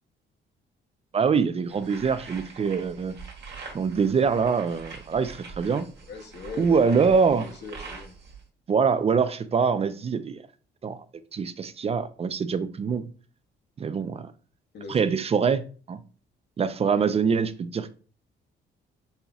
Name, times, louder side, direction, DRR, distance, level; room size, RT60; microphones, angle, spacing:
voice 1, 1.1-3.2 3.7-5.9 6.6-7.5 8.7-10.4 10.8-11.0 11.3-13.0 13.8-14.3 14.9-15.6 15.9-16.0 16.6-17.9, right 5 dB, 30° right, 0.4 m, -24 dB
sound 1, 1.7-8.4, right 4 dB, 60° right, 1.3 m, -44 dB
voice 2, 6.1-8.1 14.7-15.4, left 4 dB, 60° left, 0.8 m, -41 dB
5.4 x 2.8 x 2.3 m
cardioid pair, 90°, 20 cm